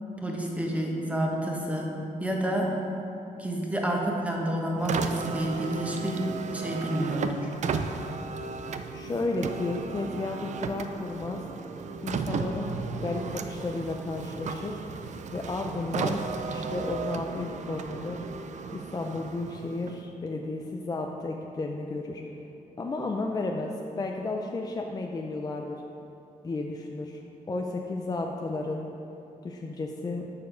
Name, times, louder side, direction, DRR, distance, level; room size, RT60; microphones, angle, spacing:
voice 1, 0.2-1.9 2.2-2.7 3.4-7.5, right 1 dB, 10° right, -1 dB, 1.1 m, -29 dB
Car, 4.8-20.2, right 5 dB, 55° right, 0.4 m, -35 dB
voice 2, 8.9-11.4 12.0-14.8 15.3-16.2 16.5-18.2 18.7-22.2 22.8-25.8 26.4-27.2 27.5-28.9 29.4-30.3, left 2 dB, 25° left, 2 dB, 0.4 m, -33 dB
7.0 x 6.7 x 5.1 m, 2.8 s
wide cardioid pair, 130°, 15 cm